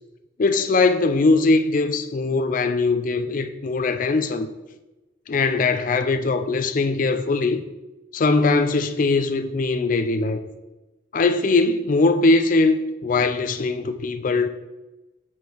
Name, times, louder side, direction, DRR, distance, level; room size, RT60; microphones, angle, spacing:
voice 1, 0.4-4.5 5.3-7.6 8.1-10.4 11.1-12.8 13.0-14.5, left 3 dB, 40° left, 0.4 m, -21 dB
7.1 x 3.2 x 4.5 m
head